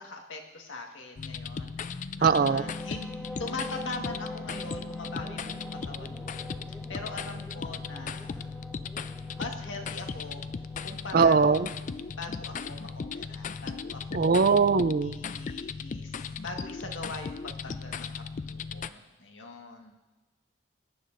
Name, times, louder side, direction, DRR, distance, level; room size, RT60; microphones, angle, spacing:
voice 1, 0.0-8.5 9.3-10.4 10.8-11.7 12.1-14.4 15.0-19.9, left 3 dB, 80° left, 2 dB, 1.6 m, -42 dB
sound 1, 1.2-18.9, left 5 dB, 40° left, 0.3 m, -37 dB
sound 2, 2.2-14.1, equal, ahead, 0.8 m, -46 dB
voice 2, 2.2-2.6 11.1-11.7 14.1-15.2, right 5 dB, 50° right, 13 dB, 0.4 m, -21 dB
21.5 x 9.8 x 2.6 m, 1.2 s
head